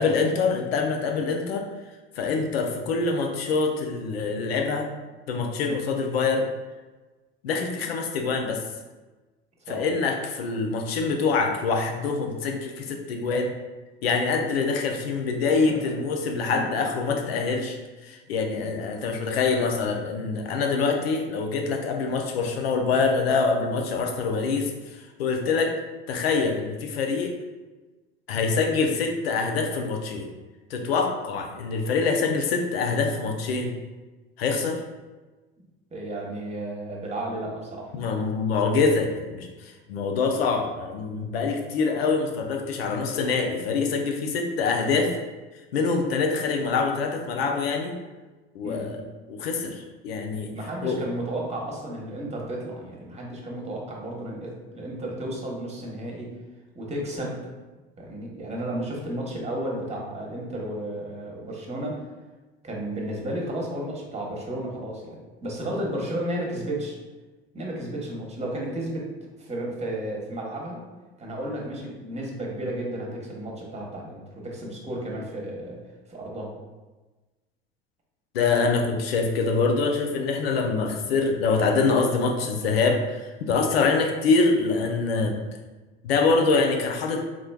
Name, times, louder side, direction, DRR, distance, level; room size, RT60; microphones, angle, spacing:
voice 1, 0.0-1.7 2.2-4.9 5.3-6.5 7.4-8.6 9.7-13.5 14.0-17.8 18.0-25.7 26.1-27.3 28.3-30.3 30.7-33.7 34.4-34.8 37.9-45.1 45.7-47.9 48.5-49.0 49.3-50.5 50.8-51.0 78.3-85.4 86.0-87.2, left 4 dB, 80° left, 3 dB, 0.6 m, -25 dB
voice 2, 35.9-37.9 48.6-48.9 50.5-56.3 56.7-57.4 58.0-62.0 62.6-67.0 67.5-69.1 69.4-70.8 71.2-75.8 76.1-76.5, right 1 dB, 20° right, -2 dB, 1.1 m, -33 dB
3.9 x 3.1 x 2.3 m, 1.2 s
hypercardioid pair, 75°, 30 cm